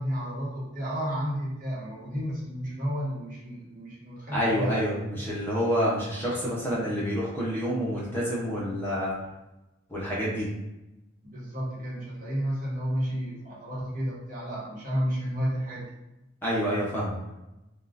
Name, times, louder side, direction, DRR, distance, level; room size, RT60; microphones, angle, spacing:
voice 1, 0.0-4.8 11.2-15.9, equal, 45° right, -7 dB, 1.1 m, -32 dB
voice 2, 4.3-9.2 9.9-10.5 16.4-17.2, equal, 10° left, -7 dB, 0.8 m, -28 dB
3.6 x 2.3 x 2.5 m, 0.96 s
head